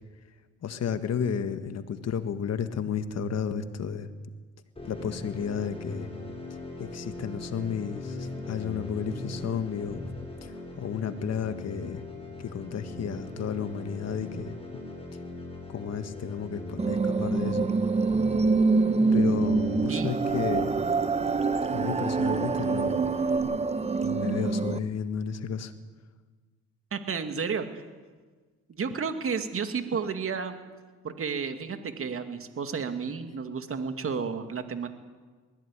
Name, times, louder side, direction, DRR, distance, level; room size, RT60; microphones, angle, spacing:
voice 1, 0.6-4.1 4.8-6.1 6.8-10.0 10.4-12.0 12.4-14.5 15.7-17.7 19.1-20.7 21.7-23.0 24.0-25.7, left 7 dB, 55° left, 10 dB, 1.7 m, -32 dB
sound 1, 4.8-23.4, left 2 dB, 20° left, 7.2 m, -40 dB
sound 2, 16.8-24.8, right 4 dB, 20° right, 0.9 m, -25 dB
voice 2, 26.9-27.8 28.7-30.6 31.0-34.9, right 5 dB, 45° right, 7 dB, 2.3 m, -32 dB
21.0 x 15.5 x 9.9 m, 1.4 s
cardioid pair, 90°, 30 cm